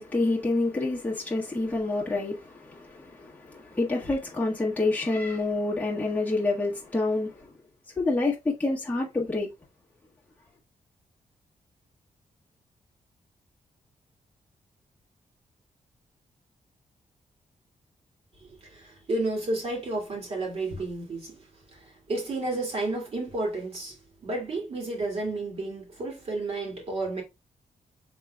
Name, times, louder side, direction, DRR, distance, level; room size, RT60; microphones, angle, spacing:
voice 1, 0.0-7.5 7.9-9.5, left 2 dB, 10° left, 1.4 m, -28 dB
voice 2, 18.4-21.4 21.7-24.0 24.2-27.2, right 2 dB, 50° right, 2.4 m, -31 dB
5.8 x 3.7 x 2.3 m
wide cardioid pair, 140°, 14 cm